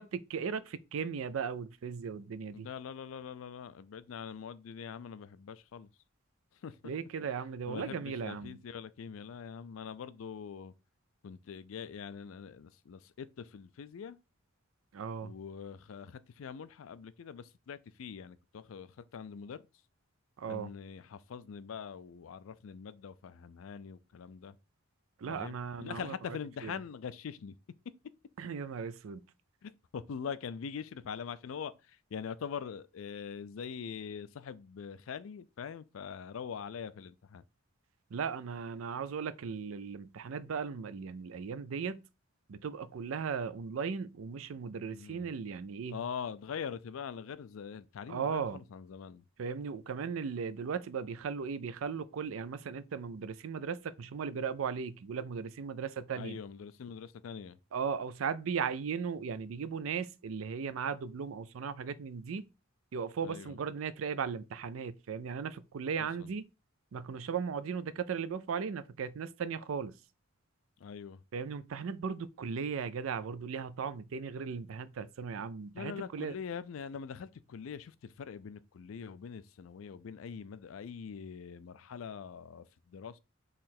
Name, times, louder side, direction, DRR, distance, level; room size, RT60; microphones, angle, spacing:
voice 1, 0.0-2.7 6.8-8.6 14.9-15.3 20.4-20.7 25.2-26.1 26.6-26.7 28.4-29.2 38.1-42.0 42.5-46.0 48.1-48.6 49.4-56.4 57.7-62.5 62.9-66.4 66.9-69.9 71.3-76.4, right 6 dB, 80° right, 0.4 m, -37 dB
voice 2, 2.5-5.9 6.6-6.8 7.7-10.7 11.2-14.2 15.2-19.6 20.5-24.6 25.3-27.5 29.6-37.4 44.9-45.3 45.9-49.2 56.1-57.6 63.2-63.6 66.0-66.3 70.8-71.2 75.7-83.2, left 6 dB, 75° left, 0.4 m, -43 dB
4.0 x 3.1 x 4.2 m
head